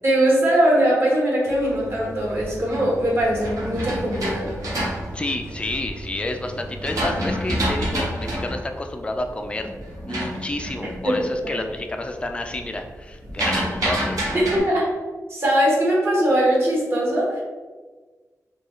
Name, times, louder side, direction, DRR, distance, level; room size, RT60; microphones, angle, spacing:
voice 1, 0.0-4.5 11.0-11.2 11.4-11.5 14.3-14.9 15.3-17.4, right 1 dB, 45° right, -3 dB, 1.1 m, -20 dB
sound 1, 1.5-8.0, right 1 dB, 60° right, 0.9 m, -39 dB
sound 2, 2.2-6.0 6.5-11.3 11.7-12.1 12.4-14.6, equal, 85° right, 1.1 m, -28 dB
voice 2, 5.1-9.7 10.1-14.3, left 2 dB, 20° left, 4 dB, 0.3 m, -30 dB
3.8 x 2.3 x 3.1 m, 1.3 s
wide cardioid pair, 145°, 6 cm